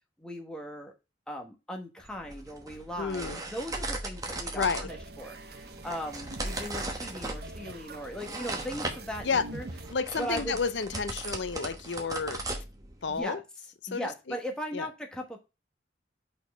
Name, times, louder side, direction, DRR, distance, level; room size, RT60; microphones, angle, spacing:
voice 1, 0.2-0.9 1.3-9.7 10.2-10.6 13.1-13.4 13.9-15.4, equal, 5° left, 1.1 m, -38 dB
Flipbooking teabags, 2.0-13.2, right 2 dB, 20° right, 1.0 m, -38 dB
voice 2, 3.0-3.4 4.5-4.9 9.2-9.5 9.9-12.4 13.0-13.4 13.9-14.1 14.7-14.9, left 5 dB, 70° left, 0.7 m, -30 dB
sound 1, 4.9-9.9, right 2 dB, 55° right, 0.9 m, -45 dB
5.4 x 4.4 x 4.6 m
head